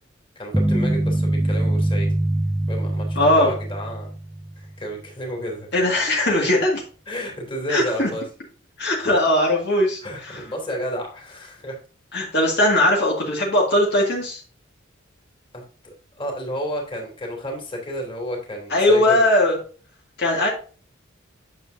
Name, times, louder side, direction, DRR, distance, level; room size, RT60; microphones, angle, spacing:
voice 1, 0.4-2.2 2.7-4.1 4.6-5.7 7.1-8.2 10.0-11.8 15.5-19.2, equal, 25° left, 0 dB, 2.8 m, -31 dB
sound 1, 0.5-4.7, right 1 dB, 5° right, 0.3 m, -23 dB
voice 2, 3.2-3.5 5.7-6.8 7.7-8.1 8.8-10.4 12.1-14.4 18.7-19.6 20.2-20.5, left 1 dB, 55° left, -2 dB, 2.0 m, -19 dB
9.4 x 7.0 x 2.7 m, 0.39 s
head